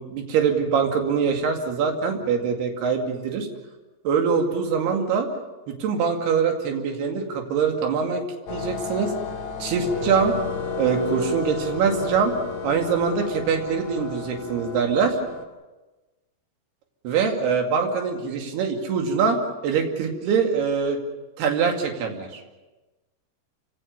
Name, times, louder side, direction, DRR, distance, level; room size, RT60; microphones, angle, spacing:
voice 1, 0.0-3.5 4.0-5.3 5.7-8.2 8.5-9.1 9.6-10.4 10.8-12.3 12.6-15.2 17.0-21.0 21.4-22.4, right 6 dB, 70° right, 3 dB, 4.3 m, -23 dB
sound 1, 8.5-15.4, left 5 dB, 40° left, 3.0 m, -32 dB
28.0 x 17.5 x 7.1 m, 1.1 s
omnidirectional pair, 4.9 m